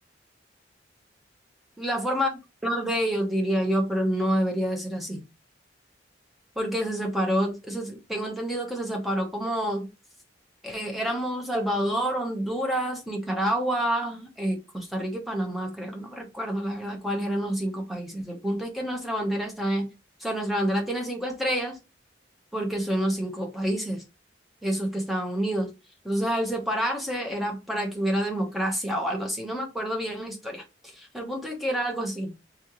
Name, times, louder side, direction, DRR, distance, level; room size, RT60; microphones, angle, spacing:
voice 1, 1.8-2.3 2.6-5.2 6.6-9.9 10.6-19.9 20.2-21.8 22.5-24.0 24.6-25.7 26.0-32.3, equal, ahead, 0.9 m, -28 dB
3.7 x 3.1 x 2.9 m
head